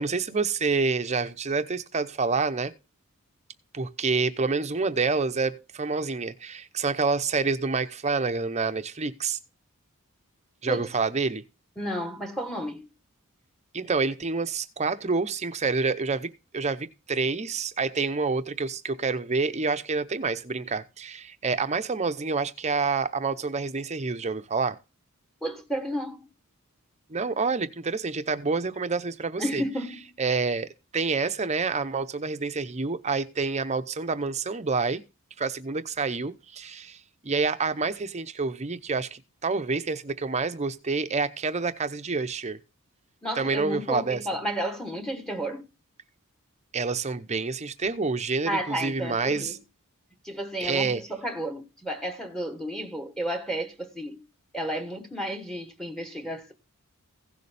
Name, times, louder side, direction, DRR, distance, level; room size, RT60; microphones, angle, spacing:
voice 1, 0.0-2.7 3.7-9.4 10.6-11.4 13.7-24.8 27.1-29.6 30.2-35.0 35.4-37.0 37.2-42.6 43.4-44.2 46.7-49.5 50.6-51.0, right 4 dB, 30° right, 0.7 m, -28 dB
voice 2, 11.8-12.9 25.4-26.2 29.4-30.2 43.2-45.6 48.5-49.6 50.2-54.2 54.5-56.5, right 1 dB, ahead, 1.2 m, -32 dB
16.0 x 6.8 x 3.4 m
head